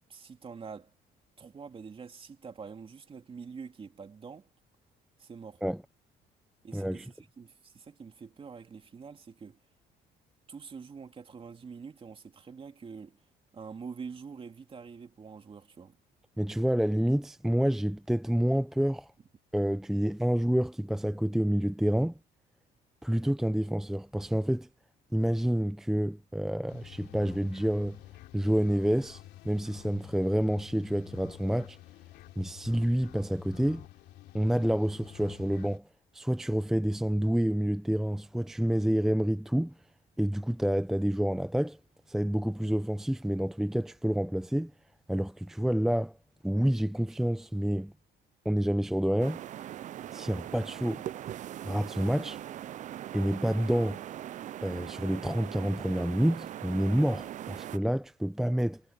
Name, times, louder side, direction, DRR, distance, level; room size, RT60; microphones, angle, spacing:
voice 1, 0.1-0.9 1.4-4.5 5.2-5.6 6.6-9.6 10.5-13.2 13.5-16.0, right 5 dB, 30° right, 2.8 m, -45 dB
voice 2, 6.7-7.1 16.4-19.1 19.5-22.2 23.0-24.7 25.1-28.0 28.3-31.8 32.4-33.9 34.3-35.9 36.1-39.7 40.2-41.8 42.1-44.7 45.1-46.2 46.4-47.9 48.4-49.4 50.1-51.0 51.6-52.4 53.1-54.0 54.6-58.8, equal, ahead, 0.6 m, -28 dB
sound 1, 26.7-35.8, left 15 dB, 80° left, 3.3 m, -50 dB
sound 2, 49.2-57.8, right 11 dB, 45° right, 0.4 m, -41 dB
cardioid pair, 110°, 17 cm